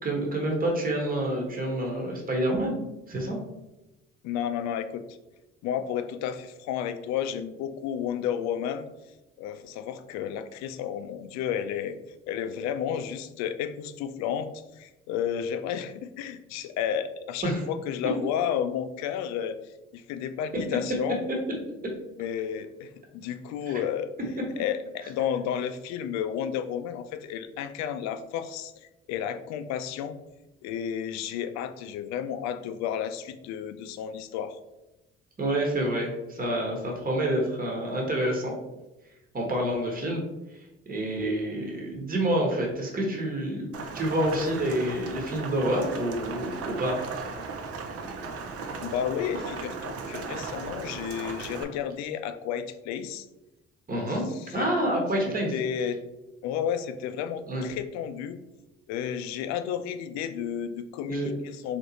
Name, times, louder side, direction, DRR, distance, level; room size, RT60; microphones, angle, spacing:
voice 1, 0.0-2.8 3.1-3.4 17.4-17.6 23.7-23.8 35.4-38.5 39.3-40.2 40.5-40.6 40.9-47.0 53.9-54.3 54.5-55.5 57.5-57.7 61.1-61.3, right 1 dB, 30° right, 0 dB, 1.2 m, -28 dB
voice 2, 4.2-5.2 5.6-8.9 9.4-12.0 12.3-14.5 14.8-19.6 19.9-21.2 22.2-24.1 24.6-28.7 29.1-30.2 30.6-34.6 48.8-53.3 54.5-54.7 55.3-56.0 56.4-58.4 58.9-61.8, left 9 dB, 65° left, 10 dB, 0.5 m, -32 dB
Rain, 43.7-51.6, right 4 dB, 50° right, 0.7 m, -36 dB
3.4 x 2.9 x 3.9 m, 0.99 s
hypercardioid pair, 55°, 30 cm